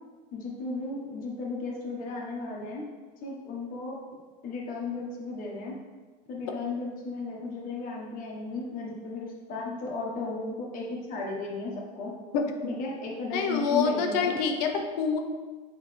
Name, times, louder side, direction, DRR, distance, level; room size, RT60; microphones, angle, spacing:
voice 1, 0.3-2.8 3.2-4.0 4.4-5.8 6.3-12.1 12.7-14.4, left 3 dB, 40° left, -2 dB, 1.3 m, -35 dB
voice 2, 12.3-12.7 13.3-15.2, left 5 dB, 75° left, 4 dB, 0.9 m, -27 dB
8.1 x 3.5 x 3.3 m, 1.4 s
supercardioid pair, 140°, 21 cm